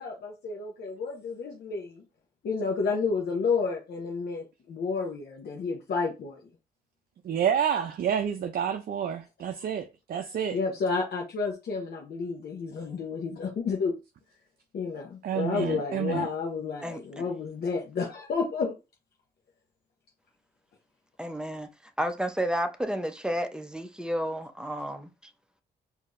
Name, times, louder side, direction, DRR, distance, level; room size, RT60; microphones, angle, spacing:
voice 1, 0.0-2.0 2.4-6.4 10.5-13.9 14.7-18.8, left 4 dB, 60° left, 0.8 m, -31 dB
voice 2, 7.2-10.6 15.2-16.3, right 8 dB, 55° right, 0.5 m, -29 dB
voice 3, 16.8-17.2 21.2-21.7 22.0-25.3, equal, 5° right, 0.7 m, -31 dB
4.4 x 2.7 x 2.5 m
cardioid pair, 75°, 18 cm